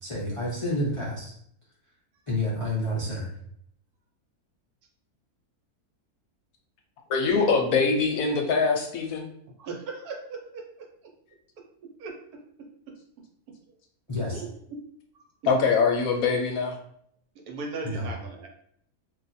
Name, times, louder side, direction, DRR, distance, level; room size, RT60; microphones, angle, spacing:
voice 1, 0.0-1.3 2.3-3.3 14.1-14.4 17.8-18.1, left 1 dB, 45° left, -6 dB, 0.4 m, -29 dB
voice 2, 7.1-9.3 15.5-16.8, left 5 dB, 70° left, 2 dB, 0.9 m, -23 dB
voice 3, 9.6-10.6 12.0-13.0 14.3-14.8 15.4-15.5 17.5-18.5, right 4 dB, 80° right, 2 dB, 1.2 m, -38 dB
2.5 x 2.4 x 4.0 m, 0.68 s
omnidirectional pair, 1.6 m